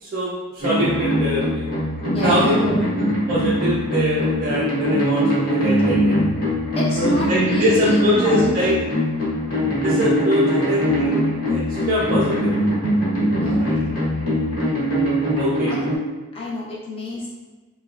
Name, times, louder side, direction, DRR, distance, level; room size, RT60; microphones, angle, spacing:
voice 1, 0.0-1.7 2.2-2.6 3.3-6.1 7.0-8.7 9.8-11.6 11.9-12.6 13.6-13.8 15.4-15.7, equal, 40° right, -7 dB, 0.3 m, -23 dB
sound 1, 0.6-16.0, equal, 65° left, 1.1 m, -21 dB
voice 2, 2.1-2.9 6.8-8.8 13.3-13.6 16.3-17.3, left 1 dB, 25° left, -5 dB, 0.5 m, -27 dB
2.9 x 2.1 x 2.3 m, 1.2 s
head